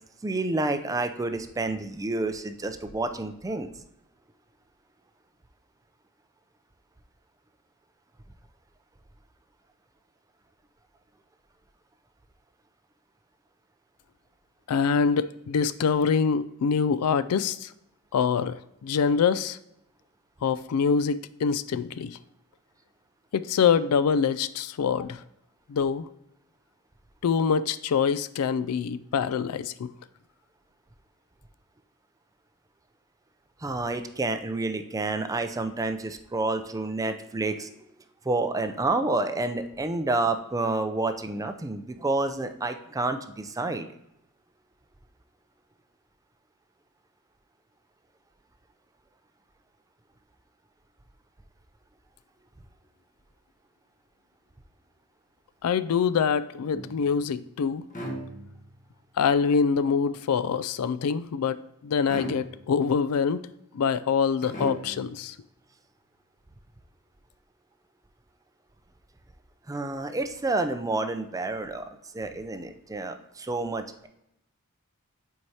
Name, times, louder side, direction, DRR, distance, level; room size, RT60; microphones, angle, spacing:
voice 1, 0.2-3.7 33.6-37.7 38.3-44.0 69.7-74.1, right 2 dB, 15° right, 8 dB, 0.4 m, -29 dB
voice 2, 14.7-17.7 18.1-19.6 20.4-22.2 23.3-25.2 25.7-26.1 27.2-29.9 55.6-57.8 59.2-63.4 63.7-65.4, left 6 dB, 80° left, 15 dB, 0.4 m, -25 dB
sound 1, 56.7-57.3 57.9-58.8 62.1-62.9 64.4-65.2, right 1 dB, 35° left, 1.1 m, -37 dB
7.7 x 4.6 x 2.8 m, 0.83 s
head